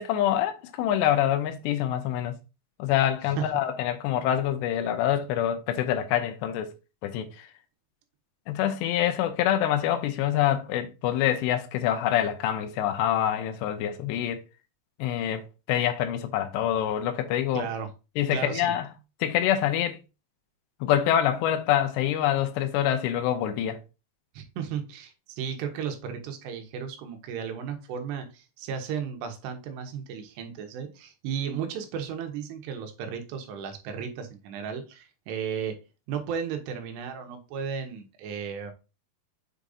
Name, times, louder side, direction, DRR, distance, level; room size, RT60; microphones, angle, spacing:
voice 1, 0.0-2.3 2.8-6.7 7.0-7.5 8.5-14.4 15.0-17.7 18.2-18.9 19.2-20.0 20.8-23.8, left 11 dB, 85° left, 2.9 m, -26 dB
voice 2, 17.5-17.9 18.3-18.7 24.3-35.8 36.1-38.7, right 7 dB, 80° right, 3.1 m, -34 dB
7.4 x 4.8 x 2.6 m
omnidirectional pair, 4.9 m